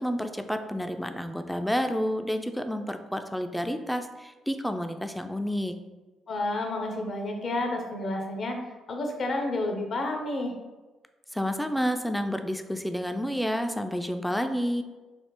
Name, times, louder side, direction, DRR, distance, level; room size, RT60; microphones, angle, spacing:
voice 1, 0.0-5.7 11.3-14.8, equal, 5° left, 7 dB, 0.3 m, -30 dB
voice 2, 6.3-8.6 8.9-10.5, left 2 dB, 50° left, 2 dB, 0.6 m, -30 dB
3.4 x 2.0 x 2.8 m, 1.2 s
hypercardioid pair, 50°, 0 cm